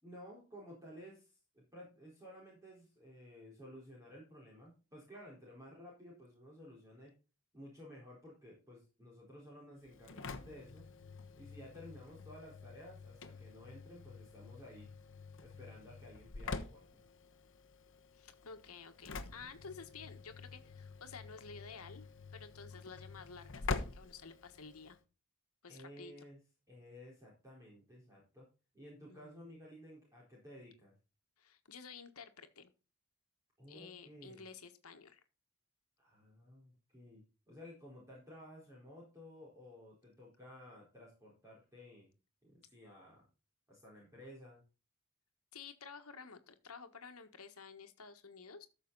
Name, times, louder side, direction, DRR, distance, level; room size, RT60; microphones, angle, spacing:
voice 1, 0.0-7.1 7.5-10.9 11.3-14.9 15.4-17.0 25.7-26.4 26.7-28.5 28.7-30.9 33.6-34.4 36.0-42.1 42.4-43.3 43.7-44.6, left 1 dB, 15° right, -4 dB, 4.2 m, -54 dB
Engine / Slam, 9.8-25.0, left 3 dB, 60° left, 1.1 m, -46 dB
voice 2, 18.1-22.1 22.3-25.0 25.6-26.3 29.1-29.6 31.4-32.7 33.7-35.2 45.5-48.7, left 5 dB, 85° left, 8 dB, 1.5 m, -52 dB
13.5 x 6.6 x 4.0 m, 0.32 s
head